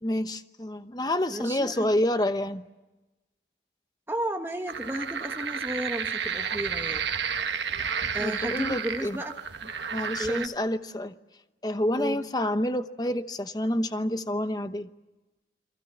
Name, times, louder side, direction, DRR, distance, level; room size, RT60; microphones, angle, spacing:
voice 1, 0.0-2.6 8.2-9.2 9.9-11.1 11.6-14.9, left 1 dB, 20° left, 10 dB, 0.9 m, -28 dB
voice 2, 1.3-1.9 4.1-7.1 8.1-9.4 10.2-10.5 12.0-12.2, right 1 dB, 15° right, 4 dB, 1.3 m, -33 dB
sound 1, 4.7-10.5, right 6 dB, 90° right, 1.4 m, -31 dB
29.0 x 23.5 x 7.0 m, 1.1 s
head